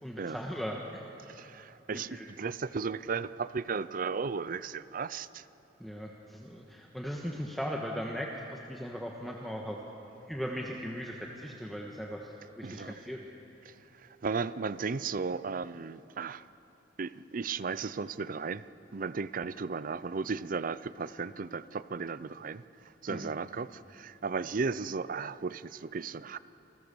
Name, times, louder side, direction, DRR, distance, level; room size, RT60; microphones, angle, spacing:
voice 1, 0.0-1.0 1.9-2.3 5.8-9.8 10.3-13.2 23.1-23.3, equal, ahead, -1 dB, 1.4 m, -38 dB
voice 2, 1.3-5.5 12.6-13.0 13.6-16.4 17.0-18.6 18.9-26.4, right 5 dB, 50° right, 16 dB, 0.5 m, -35 dB
28.0 x 19.5 x 6.9 m, 2.9 s
head